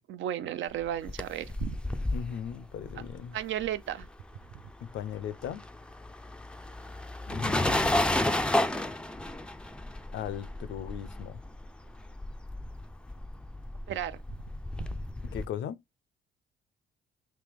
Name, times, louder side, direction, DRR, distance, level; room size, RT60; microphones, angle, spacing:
voice 1, 0.1-1.8 3.3-4.1 13.9-14.2, right 11 dB, 70° right, 0.5 m, -34 dB
sound 1, 0.8-4.5 4.7-15.5, left 1 dB, 5° left, 0.3 m, -32 dB
voice 2, 2.1-3.4 4.8-5.7 7.3-8.0 10.1-11.4 15.3-15.8, left 9 dB, 70° left, 0.5 m, -38 dB
3.3 x 2.9 x 3.4 m
cardioid pair, 90°, 20 cm